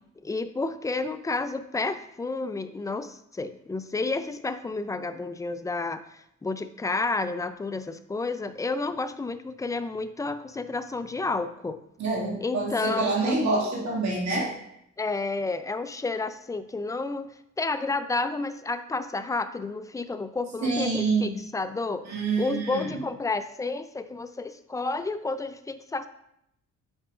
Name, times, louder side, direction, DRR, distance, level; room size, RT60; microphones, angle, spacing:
voice 1, 0.2-11.8 12.4-13.4 15.0-17.3 17.6-22.0 22.4-26.1, left 3 dB, 10° left, 11 dB, 0.4 m, -31 dB
voice 2, 12.0-14.5 20.6-21.4 22.0-23.0, right 3 dB, 65° right, -2 dB, 2.0 m, -27 dB
8.8 x 4.8 x 2.4 m, 0.76 s
cardioid pair, 90°, 30 cm